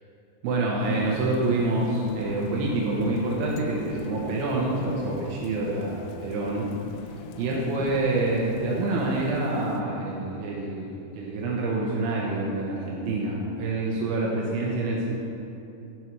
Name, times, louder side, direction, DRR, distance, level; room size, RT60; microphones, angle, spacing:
voice 1, 0.4-6.7 7.4-15.2, right 2 dB, 80° right, -4 dB, 3.3 m, -27 dB
Thunder / Rain, 0.8-9.8, left 6 dB, 85° left, 3.0 m, -41 dB
13.5 x 6.1 x 4.7 m, 2.8 s
omnidirectional pair, 5.5 m